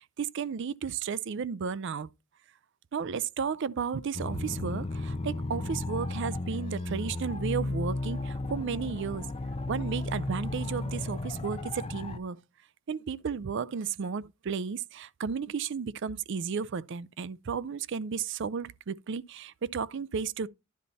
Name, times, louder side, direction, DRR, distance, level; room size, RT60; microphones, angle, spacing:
voice 1, 0.0-2.1 2.9-9.3 9.7-12.4 12.9-20.5, right 6 dB, 60° right, 0.5 m, -33 dB
sound 1, 4.1-12.2, left 2 dB, 30° left, 0.6 m, -34 dB
10.5 x 4.1 x 4.1 m
head